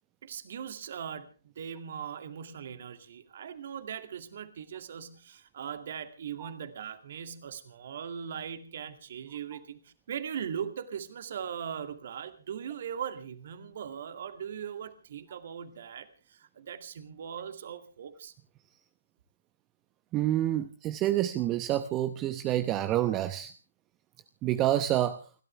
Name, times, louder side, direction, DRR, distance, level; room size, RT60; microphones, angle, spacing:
voice 1, 0.2-18.3, right 8 dB, 50° right, 9 dB, 2.3 m, -40 dB
voice 2, 20.1-23.5 24.4-25.2, right 13 dB, 20° right, 11 dB, 0.9 m, -28 dB
29.5 x 12.5 x 3.3 m, 0.38 s
figure-of-eight pair, 135°, 0 cm